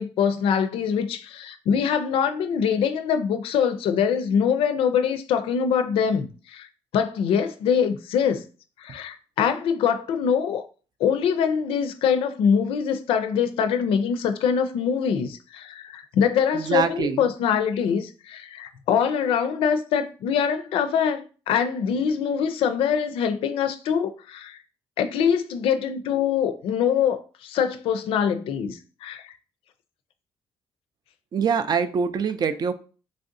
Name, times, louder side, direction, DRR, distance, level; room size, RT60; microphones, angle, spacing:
voice 1, 0.0-6.7 6.9-8.4 8.8-10.7 11.0-24.6 25.0-29.3, left 7 dB, 75° left, 0.4 m, -24 dB
voice 2, 16.5-17.3 31.3-32.7, right 6 dB, 45° right, 0.4 m, -24 dB
3.2 x 2.6 x 2.5 m
supercardioid pair, 75°, 10 cm